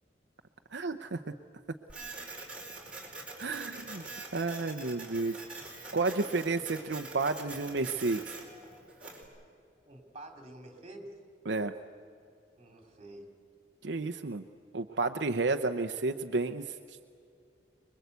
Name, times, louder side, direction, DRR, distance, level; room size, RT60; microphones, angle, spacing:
voice 1, 0.7-1.3 3.4-4.1 4.3-5.4 5.9-8.2 11.5-11.7 13.8-14.4 14.7-17.0, right 3 dB, 70° right, 6 dB, 0.8 m, -31 dB
Printer, 1.9-9.2, right 2 dB, 5° right, 4.7 m, -45 dB
voice 2, 9.8-11.2 12.6-13.3, right 1 dB, 35° right, 4 dB, 3.3 m, -49 dB
25.5 x 22.0 x 8.3 m, 2.5 s
head